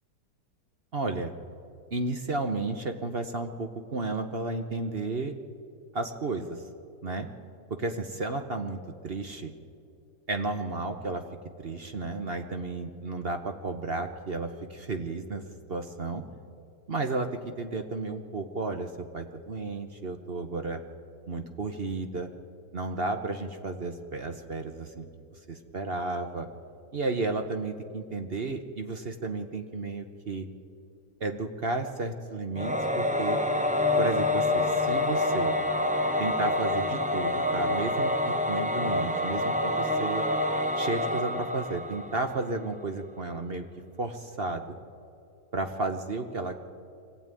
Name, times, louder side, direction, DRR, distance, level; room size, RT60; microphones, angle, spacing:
voice 1, 0.9-1.3 1.9-5.3 5.9-6.6 7.0-7.3 7.7-9.5 10.3-11.2 11.6-16.2 16.9-17.3 17.6-20.8 21.3-22.3 22.7-25.1 25.5-26.5 26.9-30.5 31.2-33.4 34.0-35.5 36.2-40.2 40.8-43.7 44.0-44.8 45.5-46.7, right 3 dB, 40° right, 6 dB, 1.1 m, -33 dB
Singing / Musical instrument, 32.6-42.6, left 1 dB, 5° right, 0.7 m, -27 dB
24.5 x 16.0 x 9.1 m, 2.5 s
omnidirectional pair, 1.8 m